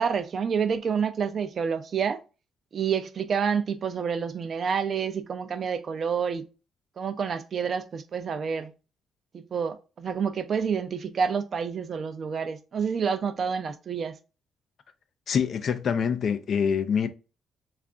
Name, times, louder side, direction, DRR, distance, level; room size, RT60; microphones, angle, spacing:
voice 1, 0.0-2.2 2.7-6.4 7.0-8.7 9.3-14.1, right 6 dB, 50° right, 0.5 m, -28 dB
voice 2, 15.3-17.1, left 7 dB, 55° left, 0.4 m, -25 dB
3.3 x 2.5 x 3.6 m
cardioid pair, 90°, 0 cm